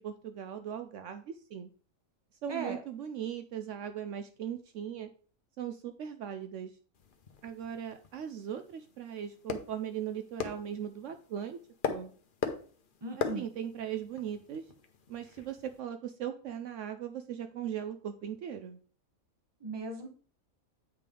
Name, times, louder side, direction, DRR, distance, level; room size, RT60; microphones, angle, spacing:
voice 1, 0.0-1.7 2.4-5.1 5.6-6.8 7.4-11.6 11.9-12.1 13.2-14.7 15.1-18.8, right 9 dB, 70° right, 8 dB, 0.9 m, -39 dB
sound 1, 6.9-15.8, left 6 dB, 45° left, 0.8 m, -41 dB
voice 2, 13.0-13.5 19.6-20.1, right 3 dB, 20° right, 4 dB, 1.0 m, -37 dB
8.3 x 5.1 x 3.7 m, 0.42 s
omnidirectional pair, 1.4 m